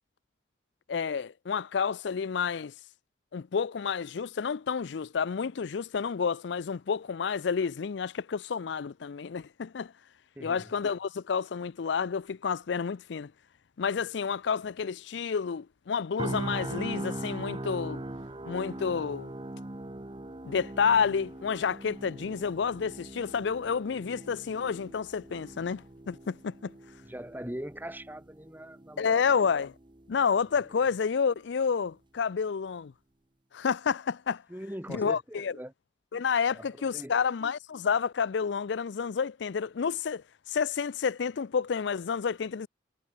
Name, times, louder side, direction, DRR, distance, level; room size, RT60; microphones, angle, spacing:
voice 1, 0.9-2.7 3.3-9.9 10.4-13.3 13.8-18.0 18.5-19.3 20.4-26.7 29.0-29.7 30.1-32.9 33.5-34.4 34.9-35.5 36.1-42.7, left 6 dB, 65° left, 0.4 m, -30 dB
voice 2, 10.4-10.7 27.0-29.4 30.6-30.8 34.5-35.7 36.5-37.2, equal, 10° right, 2.2 m, -42 dB
sound 1, 16.2-30.2 30.5-30.7, right 1 dB, 25° right, 0.9 m, -40 dB
head